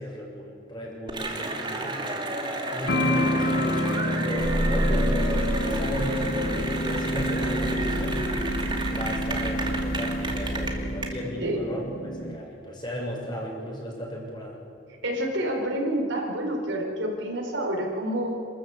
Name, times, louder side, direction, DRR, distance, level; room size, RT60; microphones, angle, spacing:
voice 1, 0.0-2.2 2.7-8.2 8.9-14.6, equal, 25° left, -2 dB, 6.3 m, -35 dB
Cheering / Applause, 1.1-11.1, right 1 dB, 25° right, 2.6 m, -31 dB
sound 1, 2.9-12.4, equal, 60° left, 1.5 m, -29 dB
sound 2, 4.4-10.7, equal, 50° right, 4.6 m, -30 dB
voice 2, 15.0-18.3, right 1 dB, 70° right, 1 dB, 4.7 m, -28 dB
28.0 x 14.0 x 8.3 m, 2.7 s
head